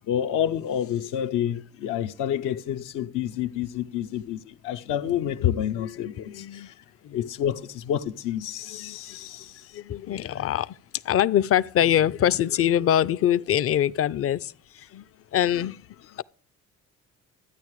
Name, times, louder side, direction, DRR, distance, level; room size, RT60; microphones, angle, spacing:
voice 1, 0.1-6.6 7.1-9.5, left 10 dB, 80° left, 0.8 m, -28 dB
voice 2, 5.2-6.7 7.0-7.3 8.6-9.2 9.7-10.8 11.0-15.0 15.3-16.2, left 11 dB, 45° left, 0.5 m, -25 dB
13.0 x 9.1 x 4.7 m
supercardioid pair, 65°, 32 cm